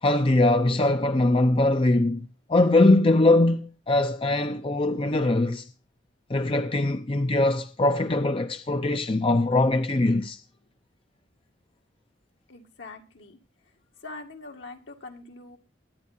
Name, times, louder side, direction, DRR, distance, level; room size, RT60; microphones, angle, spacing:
voice 1, 0.0-5.7 6.3-10.4, left 2 dB, 30° left, 0.6 m, -22 dB
voice 2, 12.5-13.4 14.0-15.6, left 3 dB, 70° left, 2.0 m, -43 dB
22.0 x 9.5 x 2.7 m
head